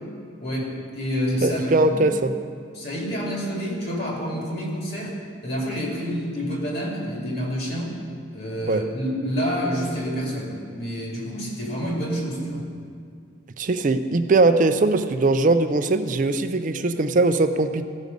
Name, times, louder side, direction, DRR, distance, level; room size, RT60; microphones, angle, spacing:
voice 1, 0.4-2.0 2.7-5.2 5.4-7.9 8.3-12.7, equal, 50° left, -3 dB, 2.4 m, -28 dB
voice 2, 1.4-2.3 8.7-8.9 13.6-17.8, right 3 dB, 40° right, 10 dB, 0.4 m, -20 dB
15.5 x 6.3 x 5.3 m, 2.2 s
head